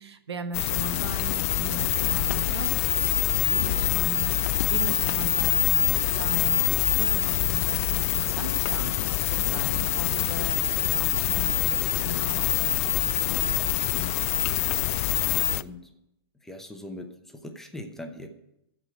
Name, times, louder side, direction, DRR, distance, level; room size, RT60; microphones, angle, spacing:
voice 1, 0.0-2.7 3.4-4.4 4.7-9.0 9.3-13.5, right 3 dB, 90° right, 9 dB, 1.3 m, -38 dB
sound 1, 0.5-15.6, left 16 dB, 35° left, 0.3 m, -25 dB
voice 2, 1.5-2.0 9.4-9.9 14.0-14.3 15.5-15.9 16.3-18.3, left 1 dB, 5° left, 4 dB, 0.9 m, -41 dB
14.5 x 5.0 x 9.1 m, 0.84 s
hypercardioid pair, 150°, 13 cm